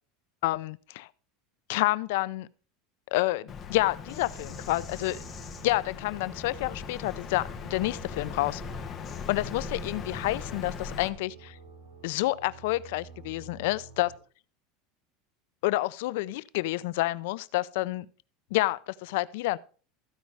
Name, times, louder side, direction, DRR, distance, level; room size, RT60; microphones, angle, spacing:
voice 1, 0.4-1.1 1.7-2.5 3.1-5.2 5.6-8.6 9.3-11.6 12.0-14.1 15.6-18.1 18.5-19.6, left 18 dB, 75° left, 0.4 m, -29 dB
Bird vocalization bird call bird song, 3.5-11.1, left 5 dB, 30° left, 1.3 m, -39 dB
sound 1, 4.1-14.2, right 5 dB, 70° right, 3.9 m, -50 dB
14.5 x 5.3 x 4.6 m
supercardioid pair, 135°, 0 cm